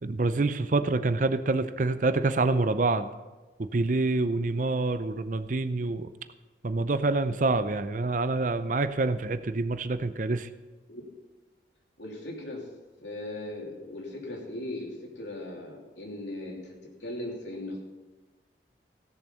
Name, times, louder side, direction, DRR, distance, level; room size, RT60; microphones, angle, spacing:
voice 1, 0.0-3.1 3.6-6.1 6.6-10.5, right 3 dB, 45° right, 11 dB, 0.5 m, -26 dB
voice 2, 12.0-12.7 13.0-17.8, left 1 dB, 80° left, -1 dB, 2.9 m, -38 dB
16.5 x 7.1 x 5.6 m, 1.2 s
head